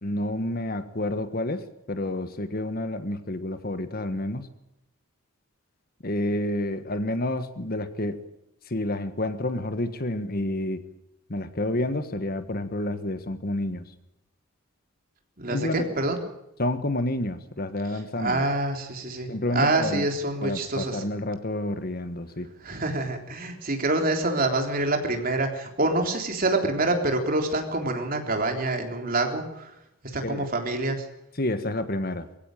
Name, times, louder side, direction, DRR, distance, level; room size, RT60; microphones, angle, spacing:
voice 1, 0.0-4.5 6.0-8.2 8.7-10.8 11.3-13.9 15.5-15.8 16.6-18.4 19.3-20.1 20.4-22.5 30.2-30.5 31.3-32.3, left 1 dB, 45° left, 10 dB, 1.5 m, -29 dB
voice 2, 15.4-16.2 18.2-21.0 22.6-29.7 30.1-31.1, right 2 dB, 40° right, 4 dB, 3.6 m, -26 dB
22.5 x 16.0 x 9.1 m, 0.84 s
head